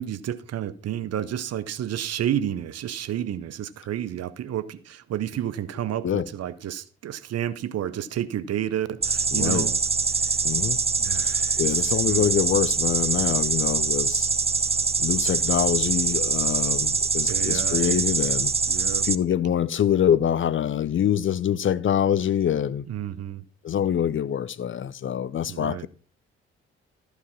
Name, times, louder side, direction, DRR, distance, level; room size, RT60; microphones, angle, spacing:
voice 1, 0.0-9.8 10.1-10.4 11.0-12.3 17.3-18.1 18.7-19.1 22.9-23.4 25.5-25.9, right 10 dB, 50° right, 0.8 m, -31 dB
sound 1, 9.0-19.1, right 4 dB, 20° right, 0.7 m, -24 dB
voice 2, 9.3-9.7 10.4-10.8 11.2-14.3 15.0-18.5 19.0-22.9 23.6-25.9, left 9 dB, 40° left, 0.6 m, -25 dB
14.0 x 5.0 x 5.9 m
figure-of-eight pair, 40°, 32 cm